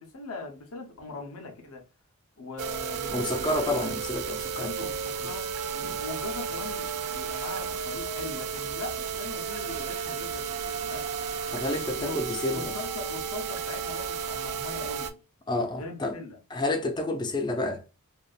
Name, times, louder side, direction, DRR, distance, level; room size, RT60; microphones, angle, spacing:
voice 1, 0.0-1.8 2.4-3.6 4.6-11.1 11.9-12.2 12.5-15.2 15.8-16.4, left 3 dB, 65° left, 0.7 m, -40 dB
sound 1, 2.6-15.1, right 6 dB, 90° right, 0.4 m, -33 dB
voice 2, 3.1-4.7 5.8-6.0 11.5-12.7 15.5-16.2 16.5-17.8, left 2 dB, 20° left, 0.4 m, -29 dB
2.6 x 2.3 x 2.3 m
head